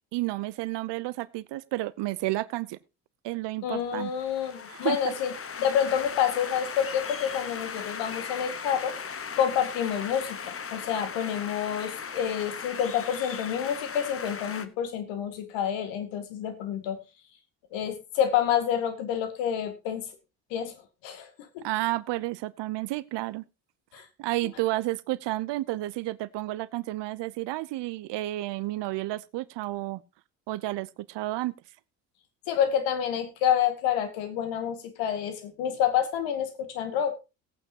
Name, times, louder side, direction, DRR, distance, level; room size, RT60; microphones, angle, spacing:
voice 1, 0.1-2.8 3.2-4.1 4.7-5.1 21.6-23.4 24.2-30.0 30.5-31.5, right 18 dB, 65° right, 18 dB, 0.9 m, -31 dB
voice 2, 3.6-5.3 5.6-8.9 9.4-17.0 17.7-20.1 20.5-20.7 21.0-21.6 23.9-24.1 32.5-36.5 36.7-37.1, left 9 dB, 75° left, 8 dB, 2.2 m, -28 dB
sound 1, 3.9-14.7, left 6 dB, 30° left, 1.2 m, -38 dB
18.5 x 8.9 x 2.9 m, 0.28 s
hypercardioid pair, 55°, 46 cm